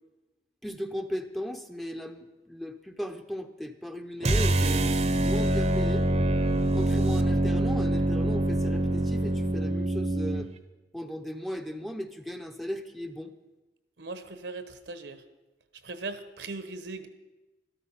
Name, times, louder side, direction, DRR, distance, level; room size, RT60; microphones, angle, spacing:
voice 1, 0.6-6.1 6.7-10.5 10.9-13.3, equal, ahead, 7 dB, 0.6 m, -36 dB
sound 1, 4.2-10.5, right 1 dB, 35° right, 0.7 m, -25 dB
voice 2, 14.0-15.2 15.8-17.1, right 3 dB, 75° right, 11 dB, 1.1 m, -39 dB
13.0 x 12.5 x 5.7 m, 1.1 s
head